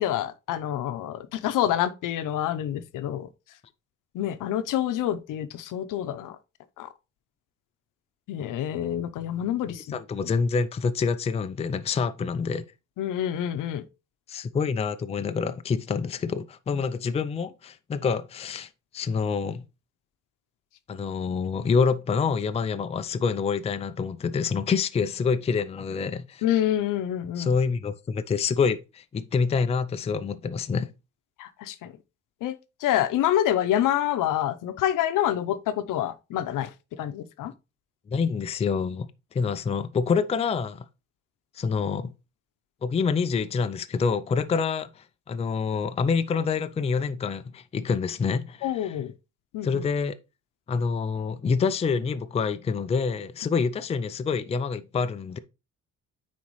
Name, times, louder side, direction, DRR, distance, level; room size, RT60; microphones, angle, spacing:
voice 1, 0.0-3.3 4.1-6.4 6.8-6.9 8.3-10.0 13.0-13.8 26.4-27.5 31.4-31.9 32.4-32.5 32.8-36.7 37.0-37.5 48.6-49.1 49.5-49.8, left 11 dB, 75° left, 0.8 m, -27 dB
voice 2, 9.9-12.6 14.3-18.7 18.9-19.6 20.9-26.4 27.4-30.9 38.1-39.1 39.3-40.8 41.6-42.1 42.8-49.0 49.6-50.2 50.7-55.4, left 5 dB, 20° left, 0.4 m, -27 dB
9.4 x 4.3 x 3.1 m
cardioid pair, 125°, 31 cm